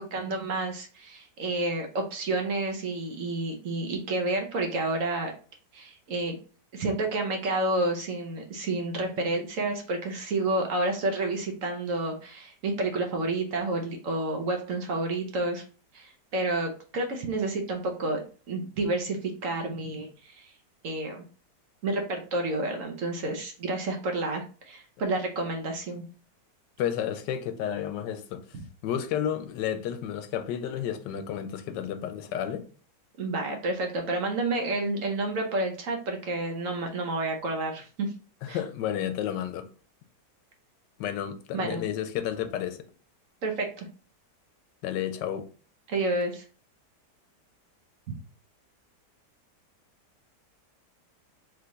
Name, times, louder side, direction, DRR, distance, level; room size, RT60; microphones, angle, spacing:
voice 1, 0.0-5.3 5.7-6.4 6.7-15.6 15.9-20.5 20.8-21.2 21.8-26.0 33.2-38.1 38.5-38.6 41.5-41.8 43.4-43.9 45.9-46.4, right 2 dB, 60° right, 1.1 m, -30 dB
voice 2, 26.8-28.6 28.8-32.7 38.4-39.7 41.0-42.9 44.8-45.5, left 10 dB, 90° left, 1.3 m, -31 dB
3.4 x 3.3 x 3.9 m
omnidirectional pair, 1.8 m